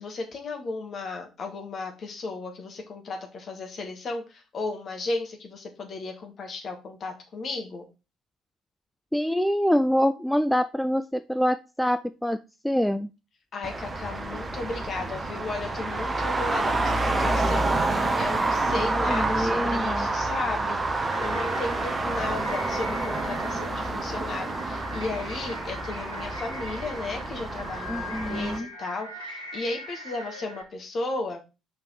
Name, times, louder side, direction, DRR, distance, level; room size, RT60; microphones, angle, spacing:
voice 1, 0.0-7.9 13.5-31.4, left 3 dB, 40° left, 4 dB, 1.6 m, -35 dB
voice 2, 9.1-12.4 12.6-13.1 18.9-20.1 27.9-28.7, equal, 5° left, 11 dB, 0.3 m, -25 dB
Traffic noise roadway noise, 13.6-28.6, right 2 dB, 20° right, 0.8 m, -28 dB
sound 1, 21.0-30.6, equal, 85° right, 1.1 m, -41 dB
5.2 x 4.6 x 4.6 m, 0.29 s
figure-of-eight pair, 50°, 0 cm